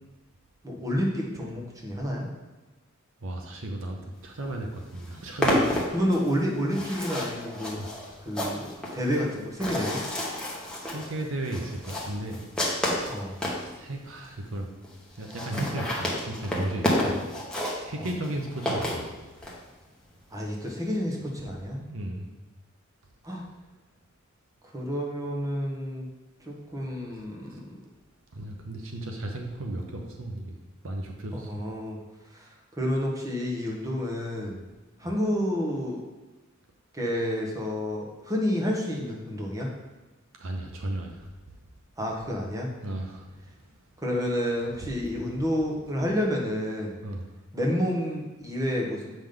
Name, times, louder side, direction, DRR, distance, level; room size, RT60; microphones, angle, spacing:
voice 1, 0.6-2.2 5.9-7.8 8.2-10.0 13.1-13.3 16.9-17.1 18.0-18.1 20.3-21.8 23.2-23.4 24.7-26.1 26.4-27.6 31.3-32.0 32.3-32.5 32.8-34.6 35.0-36.0 36.9-39.7 42.0-42.7 44.0-47.0 47.5-49.1, equal, 15° right, -2 dB, 1.2 m, -29 dB
voice 2, 3.2-5.8 7.8-7.9 10.8-12.4 13.6-14.7 15.2-17.2 17.8-19.1 21.8-22.3 27.5-27.6 28.3-30.5 30.8-31.6 40.4-41.3 42.8-43.4 47.0-47.3, right 1 dB, 70° right, 2 dB, 0.8 m, -35 dB
sound 1, 4.4-4.5 4.8-13.6 14.2-14.3 14.5-14.6 14.8-14.9 15.2-19.6, left 1 dB, 5° left, 1.3 m, -30 dB
7.4 x 5.2 x 3.8 m, 1.2 s
head